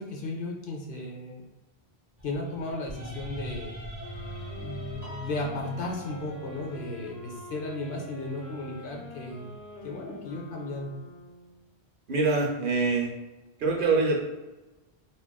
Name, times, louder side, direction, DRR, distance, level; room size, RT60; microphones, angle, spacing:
voice 1, 0.0-1.4 2.2-3.8 4.6-9.5 9.8-10.9, left 2 dB, 65° left, 0 dB, 0.7 m, -35 dB
sound 1, 2.2-10.3, right 1 dB, 20° right, 0.7 m, -44 dB
sound 2, 4.0-11.7, left 3 dB, 90° left, 0.9 m, -46 dB
Piano, 5.0-6.6, left 1 dB, 15° left, 0.5 m, -48 dB
voice 2, 12.1-13.1 13.6-14.2, right 3 dB, 65° right, 0 dB, 0.7 m, -24 dB
3.6 x 2.2 x 2.2 m, 1.1 s
omnidirectional pair, 1.0 m